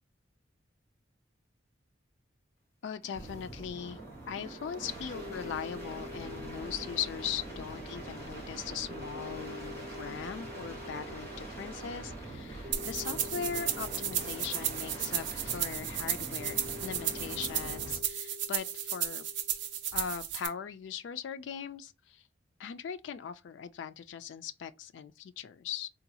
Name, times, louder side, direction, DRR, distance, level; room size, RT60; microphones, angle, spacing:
voice 1, 2.8-4.0 4.3-19.2 19.9-22.2 22.6-25.9, left 8 dB, 70° left, 0.3 m, -40 dB
sound 1, 3.0-18.1 19.9-20.3, right 2 dB, 15° left, 1.1 m, -43 dB
sound 2, 4.5-19.9, left 5 dB, 5° right, 0.7 m, -49 dB
sound 3, 12.7-20.5, right 10 dB, 70° right, 0.5 m, -34 dB
3.8 x 2.3 x 2.7 m
head